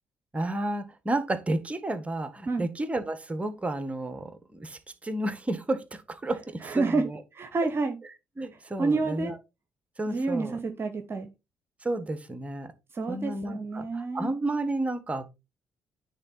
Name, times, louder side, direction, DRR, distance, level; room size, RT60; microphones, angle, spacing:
voice 1, 0.3-7.2 8.4-9.4 10.0-10.6 11.8-12.7 13.1-15.3, right 2 dB, 20° right, 1.5 m, -31 dB
voice 2, 6.6-7.1 7.3-8.0 8.8-9.3 10.1-11.3 12.9-14.3, right 3 dB, 45° right, 1.1 m, -28 dB
9.6 x 3.8 x 4.0 m
hypercardioid pair, 45°, 6 cm